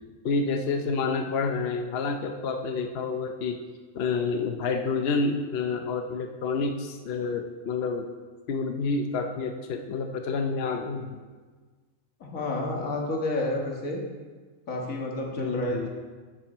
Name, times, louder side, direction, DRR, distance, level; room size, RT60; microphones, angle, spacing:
voice 1, 0.2-3.6 3.9-8.1 8.5-11.2 15.4-15.9, left 4 dB, 55° left, 5 dB, 0.8 m, -29 dB
voice 2, 12.2-14.0 14.7-15.9, left 1 dB, 70° left, 0 dB, 2.0 m, -30 dB
12.5 x 7.7 x 4.3 m, 1.4 s
omnidirectional pair, 1.5 m